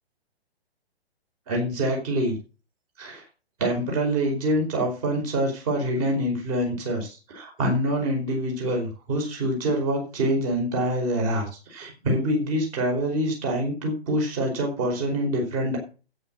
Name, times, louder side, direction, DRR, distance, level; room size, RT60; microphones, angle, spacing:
voice 1, 1.5-2.4 3.0-3.2 3.6-15.8, right 1 dB, 35° right, 0 dB, 4.9 m, -25 dB
9.5 x 8.6 x 7.4 m, 0.35 s
figure-of-eight pair, 130°, 31 cm